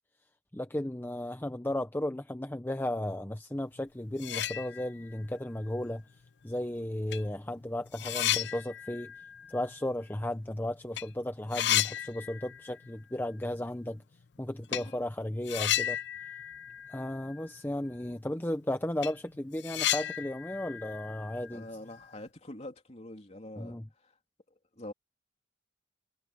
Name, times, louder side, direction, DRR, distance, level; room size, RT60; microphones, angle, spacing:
voice 1, 0.5-6.0 6.4-9.1 9.5-14.0 14.4-16.0 16.9-21.7 23.6-23.9, left 1 dB, 10° left, 0.6 m, -35 dB
sound 1, 3.8-3.9 4.1-5.2 5.6-5.7 6.6-6.7 7.1-10.6 10.8-11.0 11.3-12.9 13.1-13.2 14.7-14.9 15.4-17.6 17.9-18.0 18.4-18.5 18.8-22.0, left 12 dB, 60° left, 0.5 m, -34 dB
voice 2, 21.5-24.2 24.7-24.9, left 1 dB, 35° left, 3.4 m, -45 dB
head